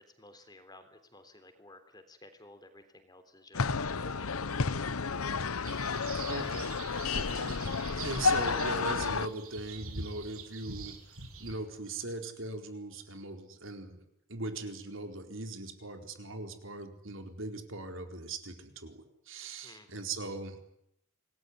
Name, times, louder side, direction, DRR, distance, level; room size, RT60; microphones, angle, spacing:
voice 1, 0.0-5.0 19.6-20.0, left 2 dB, 20° left, 8 dB, 3.5 m, -55 dB
sound 1, 3.5-9.3, left 4 dB, 85° left, 1.0 m, -31 dB
sound 2, 5.6-11.5, right 4 dB, 80° right, 7.2 m, -45 dB
voice 2, 6.3-6.7 7.1-7.6 8.0-11.0 11.4-14.0 14.3-20.6, right 2 dB, 60° right, 6 dB, 4.3 m, -40 dB
27.5 x 20.0 x 9.7 m, 0.77 s
head